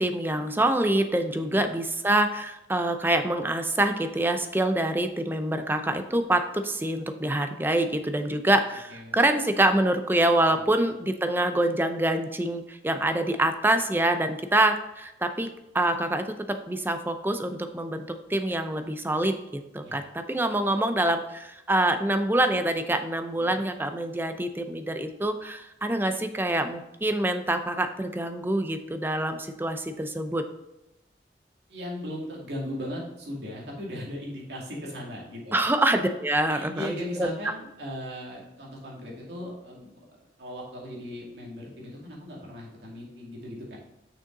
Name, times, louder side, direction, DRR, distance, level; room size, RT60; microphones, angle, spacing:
voice 1, 0.0-15.5 15.7-16.2 16.7-20.0 20.3-30.4 35.5-36.9 37.2-37.3, right 1 dB, 10° right, 8 dB, 0.5 m, -25 dB
voice 2, 1.4-1.7 8.3-9.2 19.8-20.0 23.4-23.6 31.7-35.6 36.5-40.1 40.4-43.8, left 1 dB, 70° right, -3 dB, 2.4 m, -38 dB
6.5 x 6.3 x 3.9 m, 0.90 s
head